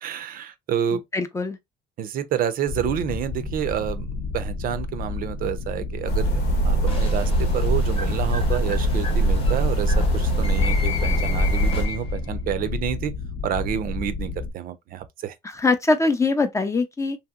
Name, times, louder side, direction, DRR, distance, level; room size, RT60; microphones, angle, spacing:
voice 1, 0.0-1.0 2.0-13.1 13.4-15.4, right 9 dB, 55° right, 0.5 m, -29 dB
voice 2, 0.9-1.6 15.4-17.2, left 3 dB, 15° left, 0.4 m, -23 dB
sound 1, 2.7-14.5, left 3 dB, 65° left, 0.7 m, -31 dB
sound 2, 6.1-11.8, right 1 dB, 80° left, 1.0 m, -22 dB
sound 3, 6.9-12.3, left 5 dB, 35° left, 0.9 m, -35 dB
2.8 x 2.7 x 2.3 m
cardioid pair, 110°, 17 cm